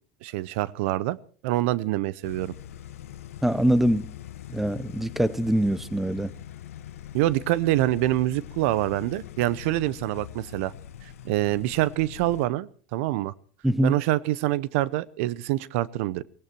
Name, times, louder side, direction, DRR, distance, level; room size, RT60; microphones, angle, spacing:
voice 1, 0.2-1.2 1.4-2.5 7.1-10.7 11.0-13.3 13.8-16.2, right 16 dB, 70° right, 0.7 m, -26 dB
sound 1, 2.2-12.5, left 11 dB, 85° left, 1.0 m, -42 dB
voice 2, 3.4-4.1 4.5-6.3 13.6-14.0, equal, 5° right, 0.9 m, -23 dB
17.5 x 17.5 x 4.5 m
hypercardioid pair, 100°, 7 cm